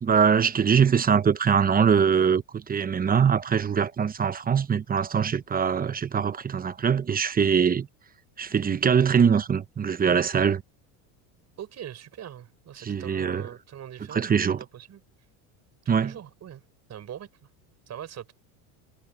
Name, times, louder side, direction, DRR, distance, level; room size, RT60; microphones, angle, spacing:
voice 1, 0.0-7.9 8.4-10.6 12.8-13.4 14.1-14.6 15.9-16.1, right 7 dB, 20° right, 0.9 m, -22 dB
voice 2, 11.6-15.0 15.8-16.6 16.9-17.5 17.9-18.3, right 10 dB, 40° right, 5.8 m, -42 dB
supercardioid pair, 110°, 42 cm